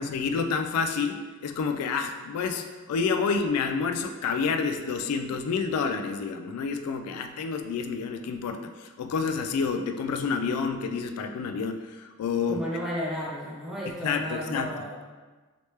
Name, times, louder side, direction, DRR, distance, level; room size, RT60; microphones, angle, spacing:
voice 1, 0.0-12.6 14.0-14.7, left 5 dB, 90° left, 11 dB, 0.3 m, -29 dB
voice 2, 12.5-15.0, equal, ahead, -7 dB, 0.7 m, -33 dB
3.2 x 2.8 x 3.1 m, 1.3 s
head